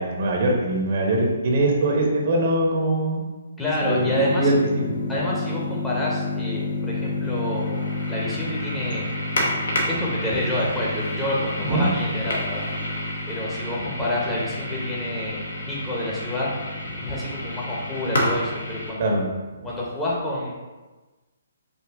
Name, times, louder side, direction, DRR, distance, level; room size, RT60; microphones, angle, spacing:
voice 1, 0.0-3.2 3.8-5.0 11.6-11.9 13.9-14.0 19.0-19.2 19.6-19.7, right 1 dB, 50° right, -1 dB, 0.9 m, -22 dB
voice 2, 3.6-4.5 5.1-9.2 9.9-12.6 13.3-16.5 17.0-19.1 19.6-20.5, left 1 dB, 10° left, -6 dB, 1.1 m, -28 dB
sound 1, 3.8-18.9, left 2 dB, 65° left, 1.1 m, -29 dB
5.3 x 2.7 x 3.6 m, 1.2 s
figure-of-eight pair, 135°, 0 cm